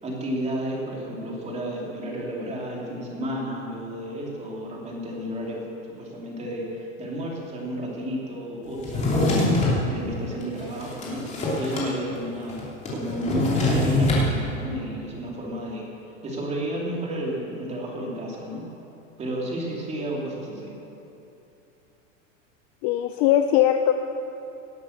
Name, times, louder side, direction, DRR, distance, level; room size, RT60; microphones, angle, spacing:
voice 1, 0.0-15.9 16.2-18.7 19.2-20.7, equal, 15° right, -2 dB, 2.8 m, -32 dB
Drawer open or close, 8.8-9.8 10.4-11.9 12.2-12.3 12.5-14.3, left 2 dB, 20° left, 2.9 m, -24 dB
voice 2, 22.8-23.9, left 11 dB, 35° left, 7 dB, 0.4 m, -20 dB
18.0 x 9.2 x 6.6 m, 2.9 s
supercardioid pair, 155°, 38 cm